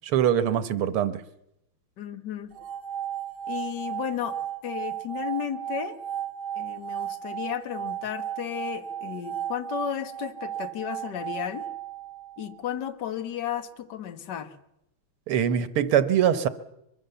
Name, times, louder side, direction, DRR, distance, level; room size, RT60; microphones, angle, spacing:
voice 1, 0.0-1.2 15.3-16.5, right 9 dB, 90° right, 13 dB, 2.1 m, -23 dB
voice 2, 2.0-2.6 3.5-4.4 4.6-6.0 6.6-11.7 12.4-14.6, left 9 dB, 55° left, 8 dB, 1.9 m, -33 dB
sound 1, 2.5-12.7, right 10 dB, 70° right, 2.3 m, -35 dB
23.5 x 23.0 x 6.9 m, 0.83 s
omnidirectional pair, 2.3 m